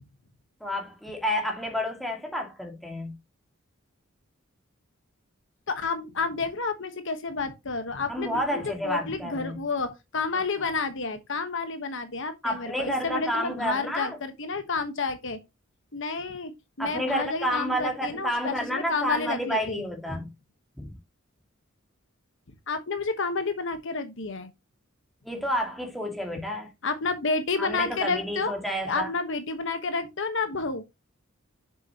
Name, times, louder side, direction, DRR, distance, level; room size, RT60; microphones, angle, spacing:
voice 1, 0.6-3.1 8.1-9.6 10.3-10.4 12.4-14.2 16.8-20.3 20.8-20.9 25.2-26.7 27.6-29.1, equal, ahead, 2.0 m, -30 dB
voice 2, 5.7-15.4 15.9-16.5 16.8-19.8 22.7-24.5 26.8-28.5 28.9-30.8, left 4 dB, 60° left, 1.2 m, -30 dB
7.0 x 6.7 x 2.9 m
head